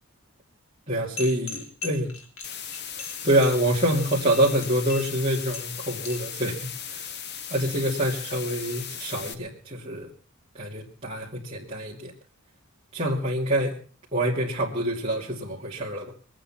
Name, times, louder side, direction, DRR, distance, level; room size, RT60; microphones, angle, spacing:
voice 1, 0.9-2.1 3.0-7.1 7.5-10.1 10.5-12.1 12.9-13.8 14.1-16.1, right 1 dB, 30° right, -6 dB, 2.7 m, -26 dB
sound 1, 1.2-6.4, left 4 dB, 75° left, 2.7 m, -39 dB
sound 2, 2.4-9.3, left 8 dB, 50° left, 1.1 m, -37 dB
23.0 x 9.0 x 5.9 m, 0.42 s
head